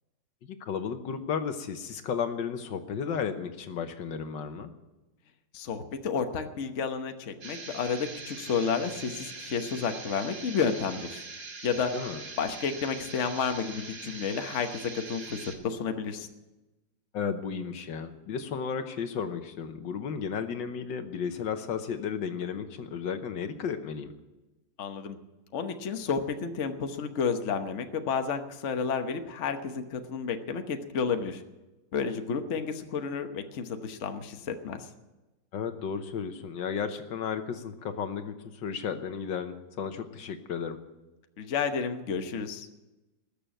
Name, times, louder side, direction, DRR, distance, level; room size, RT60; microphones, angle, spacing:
voice 1, 0.4-4.7 11.9-12.2 17.1-24.1 35.5-40.8, left 6 dB, 75° left, 8 dB, 1.7 m, -34 dB
voice 2, 5.5-11.2 11.6-11.9 12.4-16.3 24.8-25.2 25.5-31.4 31.9-34.9 41.4-42.7, left 6 dB, 45° left, 6 dB, 1.2 m, -31 dB
sound 1, 7.4-15.6, right 4 dB, 50° right, 2.3 m, -42 dB
20.5 x 6.9 x 9.1 m, 1.1 s
omnidirectional pair, 2.0 m